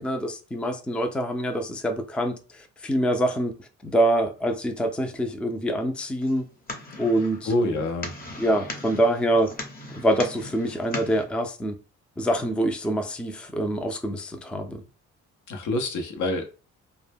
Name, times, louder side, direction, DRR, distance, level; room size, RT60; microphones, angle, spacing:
voice 1, 0.0-3.5 3.8-6.5 7.0-7.7 8.4-9.5 10.0-11.7 12.2-14.8, right 1 dB, 5° left, 0.3 m, -25 dB
sound 1, 6.2-11.2, left 2 dB, 30° left, 0.7 m, -39 dB
voice 2, 7.5-8.1 15.5-16.5, left 2 dB, 75° left, 0.7 m, -26 dB
2.1 x 2.1 x 3.3 m
cardioid pair, 90°, 30 cm